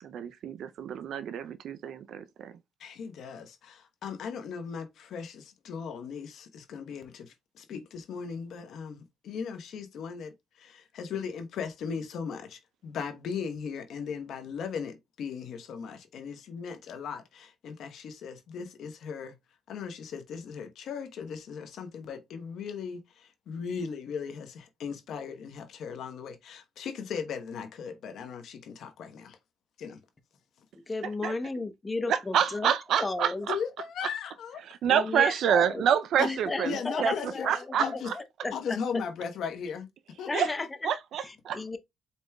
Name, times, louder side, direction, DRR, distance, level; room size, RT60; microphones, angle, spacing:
voice 1, 0.0-2.6 31.0-31.4 32.1-33.6 34.0-34.2 34.5-38.5 40.1-40.6 40.8-41.8, right 8 dB, 75° right, 0.5 m, -28 dB
voice 2, 2.8-19.4 19.7-29.4 29.8-30.0 33.5-34.6 36.2-36.3 36.7-37.5 37.8-38.1 38.5-39.9 40.2-40.7, left 6 dB, 70° left, 1.0 m, -37 dB
voice 3, 30.9-32.7 33.0-33.5 34.9-35.8 36.2-39.0 40.2-40.7 41.5-41.8, left 3 dB, 25° left, 0.7 m, -34 dB
4.6 x 4.1 x 2.3 m
cardioid pair, 90°, 0 cm